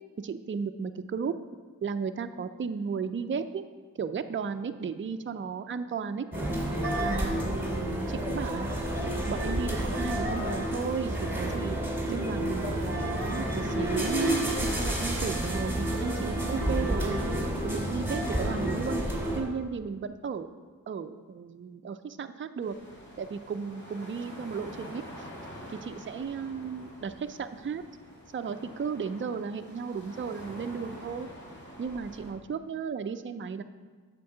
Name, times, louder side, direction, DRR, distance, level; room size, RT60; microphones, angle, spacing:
voice 1, 0.2-1.3 1.8-3.6 4.0-6.3 7.0-8.7 9.0-17.2 17.6-19.0 19.3-20.5 20.9-22.8 23.2-25.0 25.7-28.0 28.3-31.3 31.8-33.6, right 6 dB, 35° right, 9 dB, 0.4 m, -34 dB
sound 1, 6.3-19.4, right 1 dB, 5° right, 2.2 m, -30 dB
sound 2, 22.6-32.3, equal, 35° left, 2.5 m, -47 dB
8.4 x 4.5 x 6.6 m, 1.5 s
wide cardioid pair, 60°, 34 cm